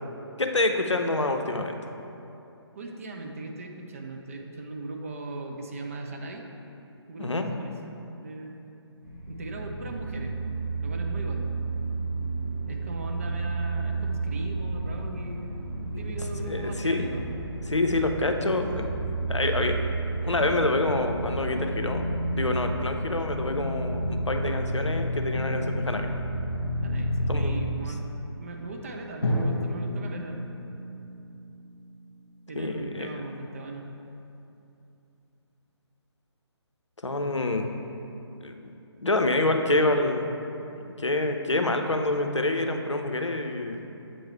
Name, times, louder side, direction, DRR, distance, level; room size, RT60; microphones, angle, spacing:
voice 1, 0.4-1.8 7.2-7.5 15.9-16.0 16.4-17.3 17.7-26.1 27.3-27.8 32.6-33.1 37.0-37.7 38.4-38.7 39.0-40.3 40.7-43.9, left 2 dB, 90° left, 5 dB, 0.6 m, -27 dB
voice 2, 2.8-6.5 7.1-7.7 8.2-8.6 9.3-10.4 10.8-11.5 12.7-15.7 16.0-17.3 18.3-18.4 26.8-28.1 28.4-30.4 32.5-33.9, right 2 dB, 30° right, 2 dB, 0.5 m, -39 dB
sound 1, 9.0-27.7, right 2 dB, 50° right, 1.1 m, -31 dB
Drum, 29.2-33.2, left 1 dB, 65° left, 1.3 m, -32 dB
7.8 x 3.1 x 4.4 m, 2.8 s
figure-of-eight pair, 145°, 15 cm